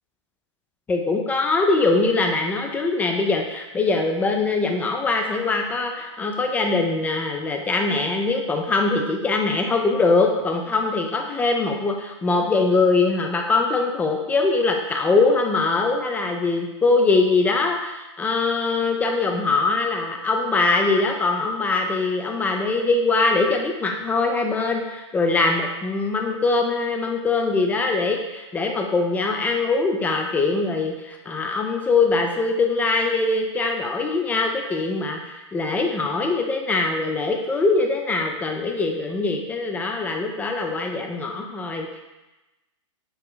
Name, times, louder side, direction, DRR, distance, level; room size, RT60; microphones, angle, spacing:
voice 1, 0.9-41.9, left 3 dB, 10° left, 3 dB, 0.3 m, -22 dB
4.5 x 2.0 x 3.9 m, 1.0 s
hypercardioid pair, 130°, 16 cm